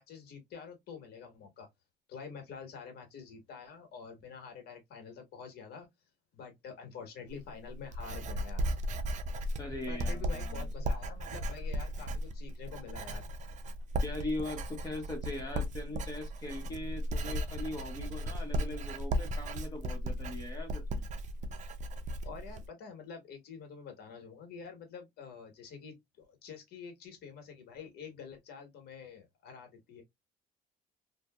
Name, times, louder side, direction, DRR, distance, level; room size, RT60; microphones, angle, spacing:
voice 1, 0.0-1.7 2.1-5.9 6.3-8.8 9.9-13.2 22.2-30.0, left 6 dB, 70° left, 1.4 m, -47 dB
Writing, 7.3-22.7, equal, 45° right, 0.5 m, -36 dB
voice 2, 9.6-10.7 14.0-21.0, left 1 dB, 20° left, 1.4 m, -40 dB
2.7 x 2.6 x 2.3 m
cardioid pair, 110°, 17 cm